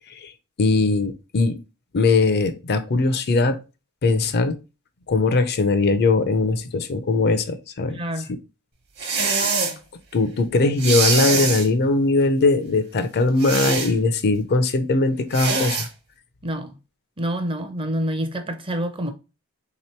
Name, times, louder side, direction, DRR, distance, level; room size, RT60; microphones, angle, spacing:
voice 1, 0.6-1.6 1.9-3.6 4.0-4.6 5.1-8.0 9.4-9.5 10.1-15.9, left 3 dB, 45° left, 0.5 m, -20 dB
voice 2, 7.9-8.3 16.4-16.8 17.2-19.1, equal, 25° right, 0.6 m, -27 dB
sound 1, 9.0-9.8 10.8-11.7 13.4-13.9 15.3-15.9, right 4 dB, 50° right, 1.1 m, -23 dB
3.5 x 2.9 x 4.3 m
head